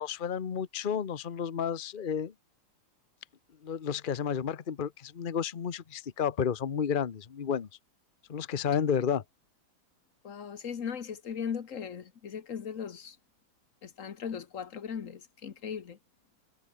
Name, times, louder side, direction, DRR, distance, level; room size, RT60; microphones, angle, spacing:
voice 1, 0.0-2.3 3.6-7.7 8.3-9.2, left 7 dB, 75° left, 0.4 m, -31 dB
voice 2, 10.2-13.2 13.8-16.0, left 7 dB, 45° left, 1.3 m, -38 dB
omnidirectional pair, 2.4 m